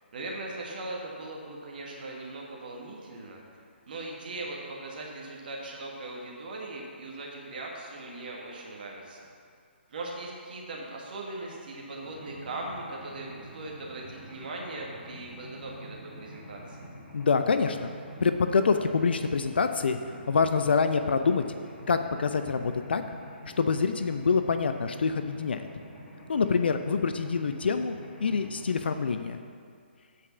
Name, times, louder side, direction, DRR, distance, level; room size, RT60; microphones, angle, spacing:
voice 1, 0.0-3.4 3.9-9.2 9.9-16.8, right 2 dB, 50° right, -2 dB, 1.4 m, -39 dB
Mechanisms, 12.0-28.9, equal, 15° left, 1.8 m, -47 dB
voice 2, 17.1-17.9 18.2-20.0 20.3-21.5 21.9-23.0 23.6-25.7 26.3-27.9 28.2-29.4, left 5 dB, 60° left, 8 dB, 0.4 m, -26 dB
8.2 x 5.0 x 7.1 m, 2.2 s
figure-of-eight pair, 135°, 6 cm